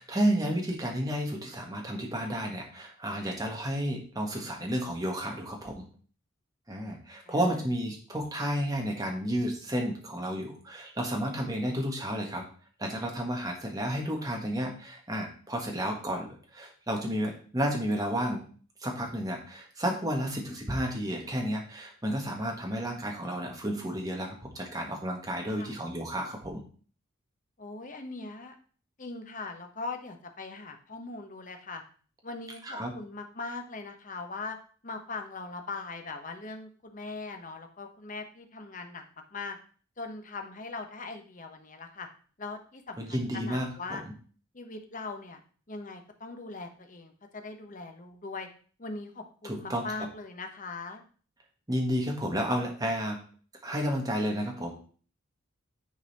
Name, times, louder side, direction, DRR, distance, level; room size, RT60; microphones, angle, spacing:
voice 1, 0.0-5.9 6.7-12.4 12.8-18.4 18.8-26.6 32.6-32.9 43.0-44.0 49.4-49.9 51.7-53.2 53.6-54.7, equal, 15° right, 0 dB, 1.5 m, -31 dB
voice 2, 27.6-28.5 29.0-31.8 32.2-34.6 34.8-39.0 39.3-39.6 40.0-42.1 42.4-44.0 44.5-45.4 45.7-48.5 48.8-51.0, left 3 dB, 40° left, 5 dB, 1.0 m, -40 dB
9.8 x 4.1 x 4.1 m, 0.42 s
head